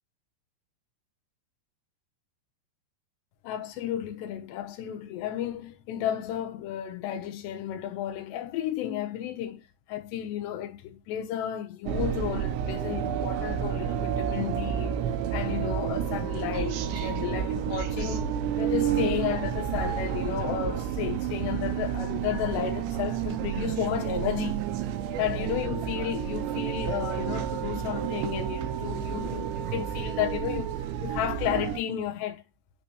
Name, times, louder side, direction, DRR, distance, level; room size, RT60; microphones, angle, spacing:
voice 1, 3.4-24.6 25.2-30.8 31.0-32.4, left 10 dB, 75° left, 3.0 m, -33 dB
sound 1, 11.9-31.8, right 9 dB, 80° right, 3.0 m, -30 dB
9.4 x 3.9 x 3.1 m
omnidirectional pair, 5.3 m